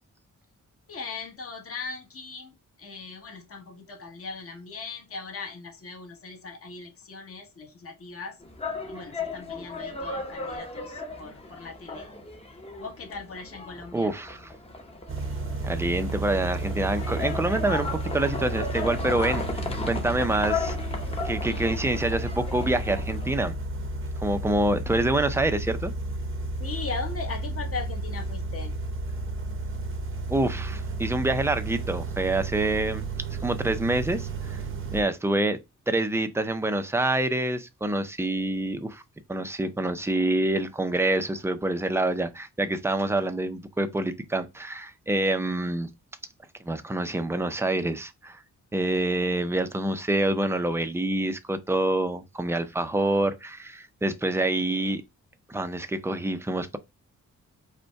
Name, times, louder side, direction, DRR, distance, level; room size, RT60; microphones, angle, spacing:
voice 1, 0.9-2.5 2.8-8.4 8.9-12.1 12.8-14.1 26.6-28.7, left 4 dB, 50° left, 1.2 m, -39 dB
sound 1, 8.4-23.5, left 3 dB, 20° left, 0.8 m, -36 dB
voice 2, 13.9-14.5 15.6-20.8 21.2-23.5 24.2-25.9 30.3-33.1 33.4-34.6 34.9-35.6 35.9-39.0 39.3-45.9 46.6-48.4 48.7-55.0 55.5-56.8, right 2 dB, 10° right, 0.4 m, -26 dB
sound 2, 15.1-35.0, right 2 dB, 45° right, 0.7 m, -32 dB
5.2 x 2.2 x 4.5 m
wide cardioid pair, 135°, 30 cm